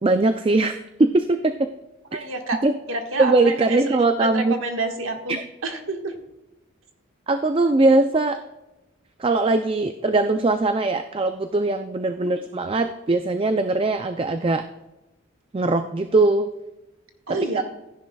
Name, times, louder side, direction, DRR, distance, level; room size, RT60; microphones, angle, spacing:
voice 1, 0.0-0.7 1.0-1.5 2.1-2.2 2.6-2.7 3.2-4.6 5.3-5.4 7.3-8.4 9.2-14.6 15.5-16.5 17.3-17.6, right 2 dB, 25° right, 8 dB, 0.4 m, -21 dB
voice 2, 2.1-2.6 2.9-6.2 12.2-12.3 17.3-17.6, right 2 dB, 85° right, 4 dB, 1.5 m, -29 dB
15.0 x 10.5 x 2.3 m, 1.0 s
head